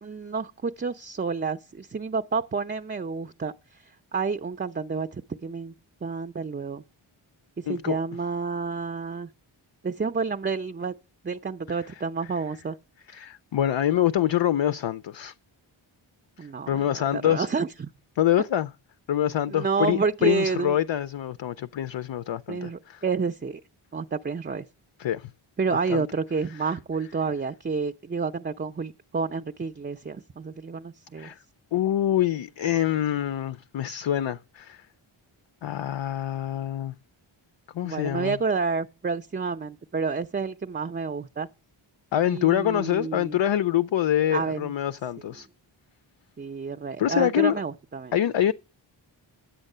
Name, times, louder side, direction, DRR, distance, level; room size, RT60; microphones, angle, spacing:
voice 1, 0.0-3.8 4.1-5.7 6.0-6.8 7.6-9.3 9.8-10.9 11.2-12.8 16.4-17.9 19.5-20.8 22.5-23.6 23.9-24.6 25.6-31.3 37.8-41.5 42.3-43.4 44.3-44.7 45.3-45.4 46.4-48.1, right 4 dB, 25° right, 0.5 m, -29 dB
voice 2, 7.7-8.0 13.1-15.3 16.7-17.5 18.2-18.7 19.1-23.0 25.0-25.3 25.9-26.0 31.2-31.4 31.7-34.9 35.6-36.9 37.7-38.4 42.1-45.5 47.0-47.6 48.1-48.5, left 11 dB, 65° left, 0.6 m, -25 dB
10.0 x 8.0 x 6.6 m
wide cardioid pair, 70°, 49 cm